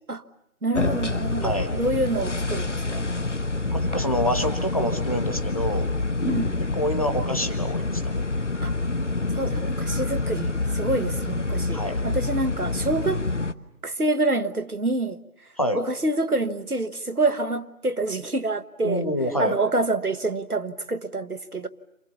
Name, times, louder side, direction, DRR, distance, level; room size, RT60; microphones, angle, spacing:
voice 1, 0.6-3.0 6.2-6.5 8.6-8.7 9.3-13.2 13.8-15.2 15.7-19.0 19.4-21.7, right 2 dB, 90° right, 1.5 m, -27 dB
sound 1, 0.7-13.5, left 2 dB, 55° left, 1.0 m, -27 dB
voice 2, 1.4-1.7 3.7-5.9 6.7-8.2 11.7-12.0 15.6-15.8 18.8-19.6, equal, 25° left, 1.4 m, -27 dB
29.0 x 28.0 x 7.1 m
figure-of-eight pair, 170°, 43 cm